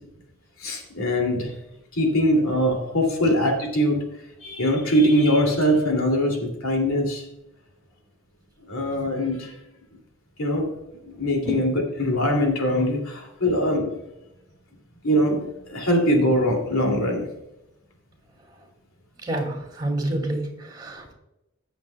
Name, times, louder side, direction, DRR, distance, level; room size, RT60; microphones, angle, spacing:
voice 1, 0.6-1.5 1.9-4.0 4.4-7.3 8.7-9.5 10.4-10.7 11.0-13.9 15.0-17.3, equal, 90° left, 2 dB, 2.6 m, -22 dB
voice 2, 19.2-21.1, right 1 dB, 20° right, 2 dB, 2.3 m, -28 dB
18.0 x 7.2 x 2.3 m, 0.92 s
head